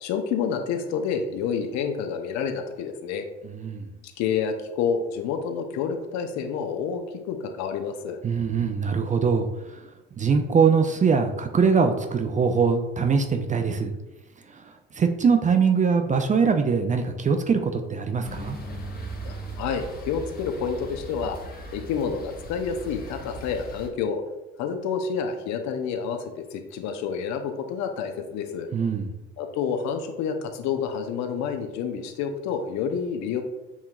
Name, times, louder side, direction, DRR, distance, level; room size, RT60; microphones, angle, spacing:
voice 1, 0.0-3.2 4.2-7.0 7.3-8.2 19.3-21.4 21.7-24.2 24.6-28.7 29.4-33.4, left 6 dB, 55° left, 6 dB, 0.7 m, -29 dB
voice 2, 3.4-3.9 8.2-9.9 10.2-13.9 14.5-18.6 28.7-29.1, right 5 dB, 25° right, 5 dB, 0.5 m, -22 dB
sound 1, 18.2-23.9, right 2 dB, 25° left, 1.0 m, -38 dB
7.1 x 2.8 x 2.4 m, 1.0 s
figure-of-eight pair, 55°, 33 cm